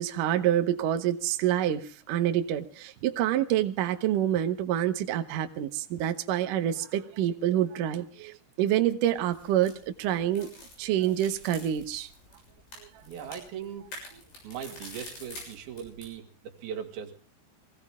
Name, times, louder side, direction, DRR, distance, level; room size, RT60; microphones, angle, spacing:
voice 1, 0.0-10.5 10.8-12.1, right 11 dB, 80° right, 7 dB, 1.8 m, -27 dB
sound 1, 9.2-16.1, left 1 dB, 65° left, 8.8 m, -47 dB
voice 2, 13.0-13.9 14.4-17.1, right 8 dB, 60° right, 4 dB, 3.6 m, -39 dB
23.5 x 17.0 x 3.6 m, 0.37 s
omnidirectional pair, 5.2 m